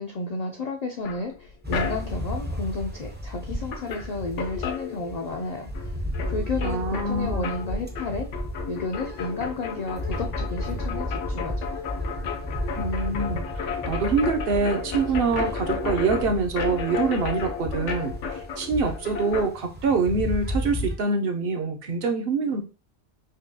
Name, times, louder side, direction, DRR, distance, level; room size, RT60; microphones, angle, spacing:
voice 1, 0.0-5.9 6.3-8.3 8.7-11.7, left 3 dB, 60° left, 3 dB, 0.4 m, -32 dB
sound 1, 1.0-2.3 3.3-3.4 3.7-5.5 5.7-19.5, left 6 dB, 80° left, 1.0 m, -33 dB
sound 2, 1.6-21.0, equal, 15° right, 0.3 m, -33 dB
voice 2, 6.6-7.6 12.8-22.6, right 4 dB, 60° right, 5 dB, 0.7 m, -25 dB
5.0 x 2.3 x 2.7 m, 0.32 s
omnidirectional pair, 1.2 m